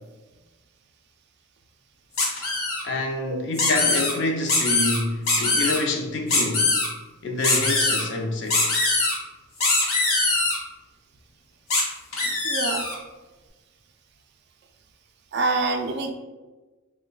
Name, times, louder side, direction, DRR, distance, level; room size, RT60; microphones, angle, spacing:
sound 1, 2.2-2.8 3.5-4.1 4.5-5.0 5.3-5.8 6.3-6.9 7.4-8.0 8.5-9.1 9.6-10.6 11.7-11.8 12.1-12.9, left 3 dB, 75° left, 0.9 m, -22 dB
voice 1, 2.8-6.7 7.2-8.6, left 2 dB, 55° left, 3 dB, 0.4 m, -27 dB
voice 2, 12.4-12.8 15.3-16.1, right 3 dB, 50° right, 5 dB, 0.3 m, -25 dB
3.0 x 2.1 x 3.8 m, 1.2 s
head